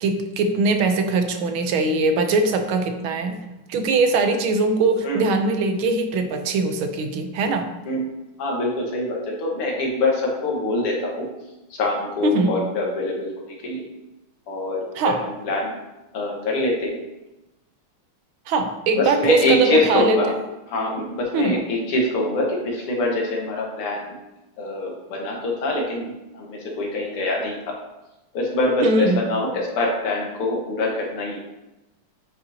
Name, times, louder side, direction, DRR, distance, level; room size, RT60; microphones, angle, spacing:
voice 1, 0.0-3.4 3.7-7.7 12.2-12.5 15.0-15.2 18.5-20.4 21.3-21.6 28.8-29.2, right 3 dB, 75° right, 6 dB, 1.5 m, -21 dB
voice 2, 8.4-11.3 11.7-13.8 14.5-15.8 16.1-17.0 18.9-20.3 20.7-24.2 24.6-27.8 28.3-31.4, left 2 dB, 90° left, -1 dB, 2.3 m, -24 dB
9.1 x 5.5 x 2.8 m, 0.99 s
omnidirectional pair, 2.4 m